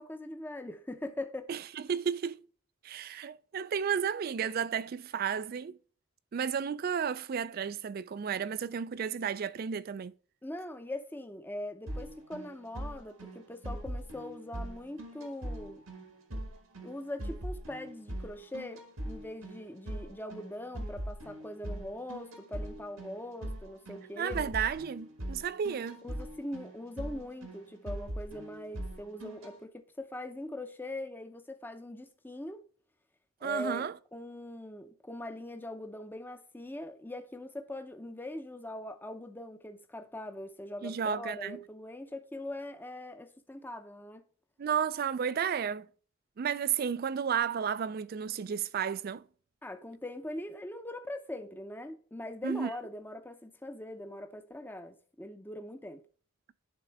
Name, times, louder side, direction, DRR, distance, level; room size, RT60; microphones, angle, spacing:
voice 1, 0.0-1.5 10.4-15.8 16.8-24.4 26.0-32.6 33.4-44.2 49.6-56.0, left 1 dB, 10° left, 0.6 m, -42 dB
voice 2, 1.5-2.4 2.8-5.8 6.3-10.1 24.2-26.0 33.4-33.9 40.8-41.6 44.6-45.9 46.4-49.2 52.4-52.7, right 7 dB, 45° right, 0.3 m, -32 dB
sound 1, 11.9-29.5, right 1 dB, 85° right, 1.8 m, -41 dB
11.0 x 3.7 x 3.4 m
head